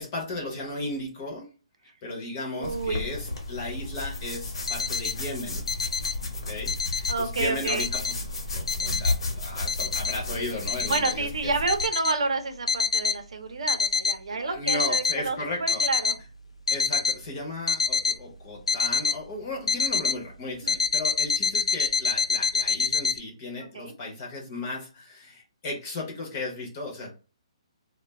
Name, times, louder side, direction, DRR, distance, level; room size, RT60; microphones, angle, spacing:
voice 1, 0.0-1.5 2.0-5.6 6.3-8.2 8.5-11.5 14.3-15.9 16.7-27.1, left 2 dB, 20° left, -1 dB, 0.6 m, -35 dB
voice 2, 2.5-3.1 7.1-7.9 10.9-16.2 20.6-20.8 23.6-23.9 27.0-27.1, right 3 dB, 70° right, 6 dB, 0.6 m, -29 dB
sound 1, 2.6-11.9, left 2 dB, 60° left, 0.9 m, -33 dB
sound 2, 4.7-5.2 5.6-6.1 6.5-7.2 7.7-8.2 8.7-9.2 9.7-10.1 10.7-11.1 11.7-12.1 12.7-13.2 13.7-14.2 14.5-15.2 15.7-16.2 16.7-17.2 17.7-18.2 18.7-19.2 19.7-20.2 20.7-23.2, left 5 dB, 90° left, 0.4 m, -26 dB
2.3 x 2.2 x 3.3 m, 0.36 s
hypercardioid pair, 180°, 3 cm